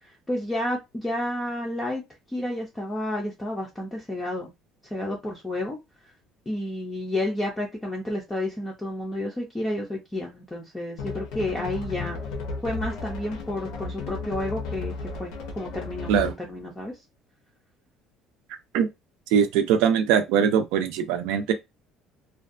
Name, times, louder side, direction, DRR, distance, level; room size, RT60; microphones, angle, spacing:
voice 1, 0.3-2.0 2.3-4.5 4.9-5.8 6.5-12.2 12.6-14.9 15.2-16.9, left 1 dB, 10° left, 0.4 m, -30 dB
sound 1, 11.0-16.5, left 4 dB, 70° left, 0.7 m, -34 dB
voice 2, 19.3-21.5, right 8 dB, 80° right, 0.5 m, -21 dB
2.5 x 2.2 x 2.5 m
cardioid pair, 180°, 0 cm